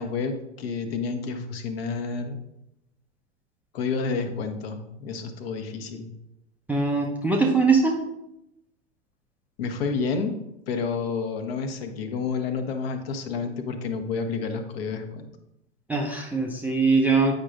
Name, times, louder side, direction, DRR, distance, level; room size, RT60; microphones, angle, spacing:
voice 1, 0.0-2.4 3.7-6.1 9.6-10.3 10.7-15.2, left 5 dB, 55° left, 6 dB, 0.9 m, -29 dB
voice 2, 6.7-8.0 15.9-17.4, right 4 dB, 5° right, -1 dB, 0.4 m, -22 dB
8.5 x 5.1 x 2.4 m, 0.87 s
figure-of-eight pair, 90°, 36 cm